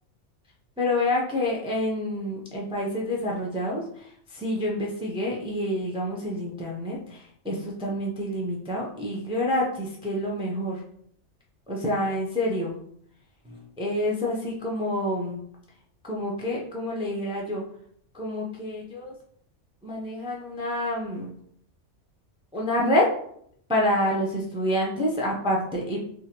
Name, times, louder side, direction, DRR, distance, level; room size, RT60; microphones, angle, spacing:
voice 1, 0.8-10.8 11.7-12.8 13.4-15.4 16.0-17.6 18.1-19.1 19.8-21.4 22.5-23.1 23.7-26.1, left 1 dB, 5° right, -2 dB, 0.4 m, -28 dB
3.7 x 3.1 x 2.9 m, 0.66 s
omnidirectional pair, 1.3 m